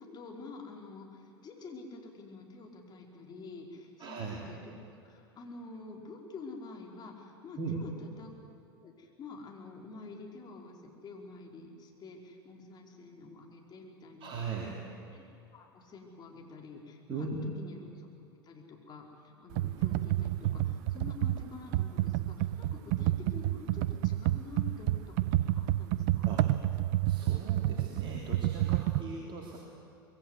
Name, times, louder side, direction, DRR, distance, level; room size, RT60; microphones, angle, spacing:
voice 1, 0.0-4.7 5.0-8.5 8.8-17.3 17.6-18.1 18.4-26.5, left 3 dB, 30° left, 1 dB, 5.1 m, -48 dB
voice 2, 4.0-4.5 7.6-7.8 14.2-14.8 17.1-17.5 26.3-26.5 27.1-29.6, right 4 dB, 40° right, -1 dB, 3.6 m, -39 dB
Computer keyboard, 19.5-29.0, right 15 dB, 55° right, 0.8 m, -29 dB
25.0 x 22.0 x 8.3 m, 2.6 s
hypercardioid pair, 90°, 13 cm